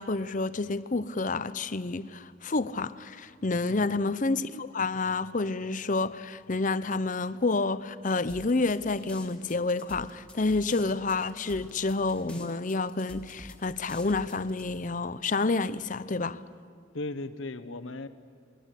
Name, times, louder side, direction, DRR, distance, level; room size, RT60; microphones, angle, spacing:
voice 1, 0.0-16.4, left 3 dB, 40° left, 0.7 m, -29 dB
voice 2, 3.7-4.0 16.9-18.1, left 2 dB, 70° left, 1.2 m, -37 dB
sound 1, 8.3-14.6, left 1 dB, 5° left, 2.3 m, -47 dB
28.0 x 21.0 x 8.3 m
head